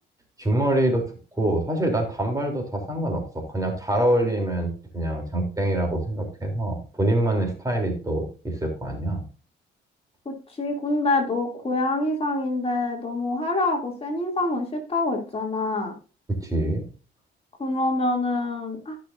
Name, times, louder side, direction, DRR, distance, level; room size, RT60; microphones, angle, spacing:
voice 1, 0.4-9.2 16.3-16.9, right 1 dB, 15° right, 2 dB, 3.3 m, -25 dB
voice 2, 10.2-15.9 17.6-19.0, left 2 dB, 30° left, 1 dB, 2.8 m, -26 dB
15.0 x 6.2 x 2.6 m, 0.35 s
cardioid pair, 90°, 20 cm